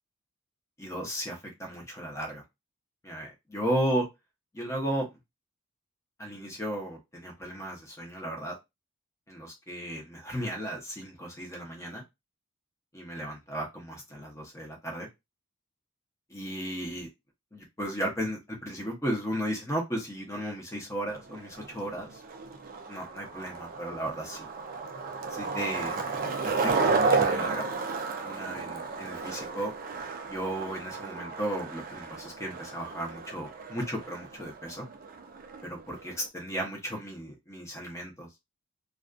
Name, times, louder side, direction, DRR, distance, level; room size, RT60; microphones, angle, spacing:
voice 1, 0.8-2.4 3.0-4.1 4.5-5.1 6.2-8.5 9.3-12.0 12.9-15.1 16.3-17.1 17.5-22.2 22.9-24.5 25.3-26.0 26.4-27.7 28.2-29.7 30.3-34.9 35.6-38.3, right 1 dB, 15° left, 0.7 m, -35 dB
Skateboard, 21.1-36.3, right 4 dB, 40° right, 0.3 m, -33 dB
2.4 x 2.3 x 2.4 m
head